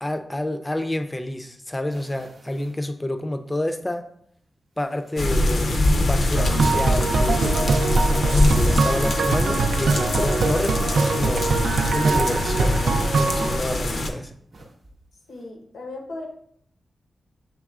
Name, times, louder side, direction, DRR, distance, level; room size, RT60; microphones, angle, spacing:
voice 1, 0.0-4.0 4.8-5.7 6.0-11.5 11.9-14.3, left 1 dB, 15° left, 7 dB, 0.4 m, -29 dB
sound 1, 1.9-3.0 3.6-3.7 4.7-5.6 5.9-7.7 8.4-11.1 11.5-11.7 12.1-12.7 13.4-14.2 14.5-15.5, right 1 dB, 65° right, 0.7 m, -42 dB
sound 2, 5.2-14.1, left 1 dB, 65° left, 0.5 m, -23 dB
sound 3, 6.4-13.6, right 3 dB, 85° right, 0.3 m, -23 dB
voice 2, 15.3-16.3, left 2 dB, 85° left, 2 dB, 0.9 m, -36 dB
7.1 x 3.2 x 2.4 m, 0.68 s
wide cardioid pair, 125°, 0 cm